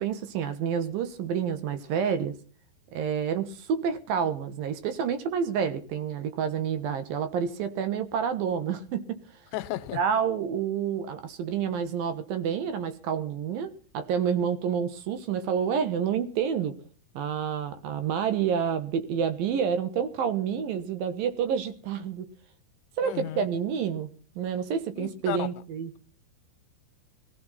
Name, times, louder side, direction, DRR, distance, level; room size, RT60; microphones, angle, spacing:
voice 1, 0.0-2.3 2.9-9.2 9.9-16.8 17.1-22.3 23.0-24.1 24.4-25.9, right 7 dB, 65° right, 2.6 m, -29 dB
voice 2, 9.5-10.0 23.0-23.5 25.0-25.5, left 15 dB, 90° left, 3.2 m, -33 dB
21.0 x 14.0 x 4.2 m
omnidirectional pair, 5.2 m